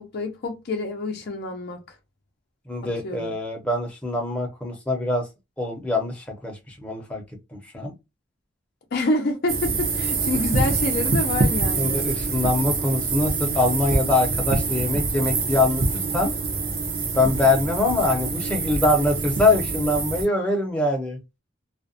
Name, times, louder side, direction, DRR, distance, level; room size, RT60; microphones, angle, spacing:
voice 1, 0.0-2.0 3.0-3.3 8.9-12.1, left 2 dB, 50° left, 0.5 m, -27 dB
voice 2, 2.7-5.3 5.6-7.2 7.5-7.9 11.8-16.3 17.1-21.2, left 2 dB, 5° left, 0.7 m, -23 dB
sound 1, 9.5-20.3, right 3 dB, 45° right, 0.6 m, -25 dB
2.4 x 2.2 x 2.6 m
head